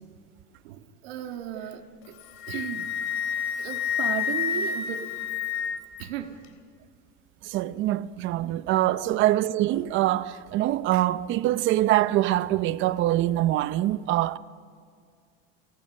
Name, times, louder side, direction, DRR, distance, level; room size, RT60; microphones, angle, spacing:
voice 1, 0.6-2.2 2.5-2.9 3.6-5.2 6.0-6.4 9.1-9.2, right 11 dB, 90° right, 1.8 m, -35 dB
Wind instrument woodwind instrument, 2.0-6.0, left 8 dB, 45° left, 3.2 m, -29 dB
voice 2, 7.4-14.4, right 14 dB, 40° right, 0.6 m, -24 dB
29.5 x 18.5 x 6.5 m
supercardioid pair, 140°, 30 cm